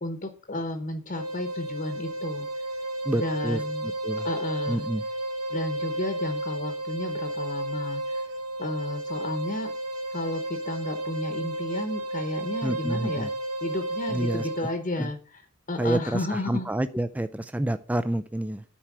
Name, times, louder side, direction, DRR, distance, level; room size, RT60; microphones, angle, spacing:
voice 1, 0.0-2.5 3.1-3.9 4.2-4.9 5.5-8.2 8.6-9.7 10.1-13.3 13.6-15.4 15.7-16.7, left 2 dB, 35° left, 8 dB, 0.9 m, -32 dB
sound 1, 1.1-14.8, right 1 dB, 90° right, 1.8 m, -32 dB
voice 2, 3.0-4.3 4.7-5.0 12.6-13.3 14.1-14.7 15.0-15.1 15.8-18.6, right 1 dB, 5° right, 11 dB, 0.3 m, -29 dB
10.0 x 4.5 x 6.0 m, 0.39 s
head